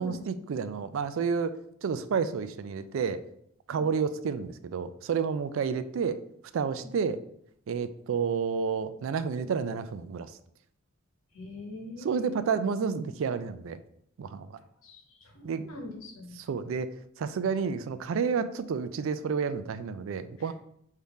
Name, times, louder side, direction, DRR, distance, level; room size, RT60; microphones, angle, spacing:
voice 1, 0.0-1.5 1.8-3.2 3.7-6.2 6.5-7.2 7.7-10.3 12.0-13.8 14.2-14.6 15.4-15.7 16.5-16.9 17.2-20.5, right 6 dB, 65° right, 12 dB, 0.3 m, -30 dB
voice 2, 11.3-12.4 14.8-16.4 20.4-20.5, left 1 dB, 85° left, 1 dB, 1.0 m, -43 dB
3.6 x 2.7 x 4.7 m, 0.71 s
head